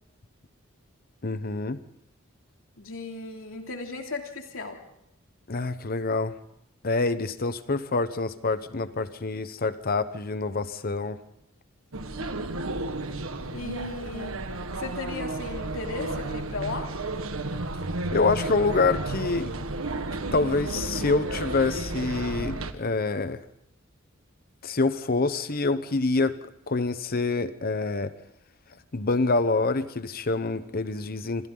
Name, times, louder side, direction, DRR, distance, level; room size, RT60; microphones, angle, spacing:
voice 1, 1.2-1.8 5.5-6.3 6.8-11.2 18.1-19.5 20.3-23.4 24.6-26.4 26.7-28.1 28.9-31.5, left 3 dB, 45° left, 12 dB, 0.9 m, -26 dB
voice 2, 2.8-4.8 13.5-14.3 14.8-16.9, left 3 dB, 75° left, 2 dB, 3.0 m, -36 dB
sound 1, 11.9-22.7, right 2 dB, 90° right, 1.5 m, -32 dB
28.0 x 26.0 x 3.9 m, 0.79 s
head